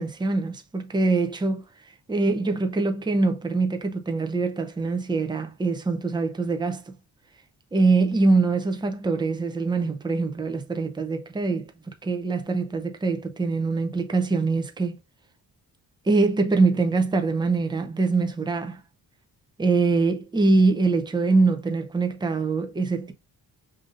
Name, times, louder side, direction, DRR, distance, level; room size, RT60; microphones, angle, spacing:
voice 1, 0.0-1.6 2.1-6.9 7.7-11.7 12.0-15.0 16.1-18.8 19.6-23.1, right 3 dB, 10° right, 0.5 m, -23 dB
5.1 x 2.7 x 2.5 m
wide cardioid pair, 110°, 38 cm